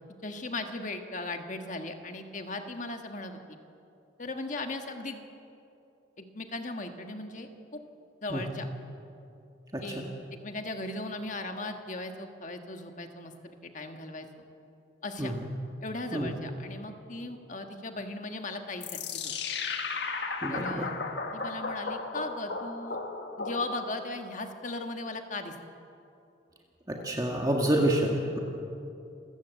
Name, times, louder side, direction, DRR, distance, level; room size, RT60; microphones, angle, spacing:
voice 1, 0.2-3.6 4.2-5.2 6.2-7.8 8.2-8.7 9.8-10.1 10.4-13.3 13.6-14.3 15.0-15.3 15.8-19.3 20.5-20.9 21.3-23.0 23.4-25.6, left 2 dB, 40° left, 5 dB, 1.6 m, -37 dB
voice 2, 9.7-10.0 15.2-15.3 16.1-16.3 20.4-20.9 26.9-28.4, right 1 dB, 20° right, 0 dB, 1.8 m, -28 dB
sound 1, 18.8-24.1, left 4 dB, 60° left, 1.7 m, -35 dB
28.0 x 14.5 x 8.3 m, 2.7 s
head